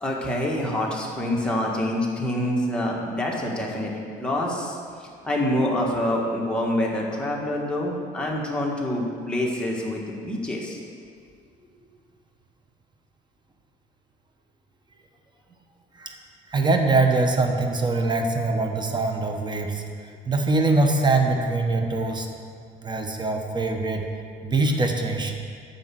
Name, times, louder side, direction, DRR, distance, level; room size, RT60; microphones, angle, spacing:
voice 1, 0.0-3.9 4.2-10.8, left 1 dB, 5° left, -3 dB, 1.9 m, -26 dB
voice 2, 16.5-22.3 22.8-24.0 24.4-25.4, right 3 dB, 25° right, 4 dB, 1.1 m, -23 dB
9.5 x 5.6 x 7.8 m, 2.1 s
cardioid pair, 110°, 17 cm